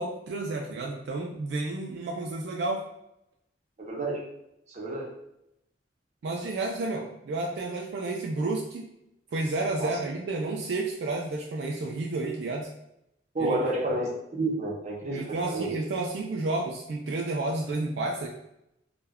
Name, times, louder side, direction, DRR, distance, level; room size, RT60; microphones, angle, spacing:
voice 1, 0.0-2.8 6.2-8.9 9.3-12.7 13.4-13.6 15.1-18.3, right 2 dB, 70° right, -1 dB, 0.3 m, -31 dB
voice 2, 3.8-4.2 4.7-5.1 9.8-10.0 13.3-15.7, right 2 dB, 40° right, -3 dB, 0.7 m, -30 dB
2.2 x 2.1 x 3.4 m, 0.83 s
head